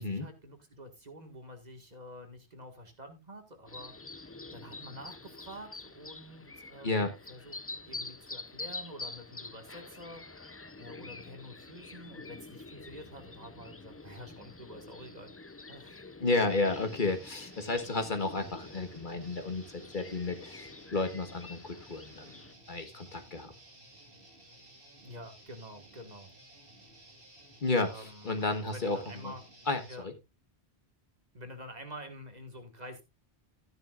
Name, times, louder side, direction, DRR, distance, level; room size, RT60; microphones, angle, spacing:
voice 1, 0.0-4.2 4.5-7.6 7.9-15.3 15.7-16.0 25.0-26.3 27.8-29.4 29.9-30.1 31.3-33.0, equal, 40° right, 5 dB, 1.9 m, -48 dB
sound 1, 3.7-22.5, left 3 dB, 25° left, 0.3 m, -47 dB
voice 2, 16.2-22.3 22.7-23.5 27.6-29.3 29.7-30.1, left 3 dB, 50° left, 8 dB, 1.5 m, -32 dB
Guitar, 16.2-29.9, right 1 dB, 55° right, 2.9 m, -56 dB
12.5 x 10.5 x 2.4 m, 0.23 s
omnidirectional pair, 1.1 m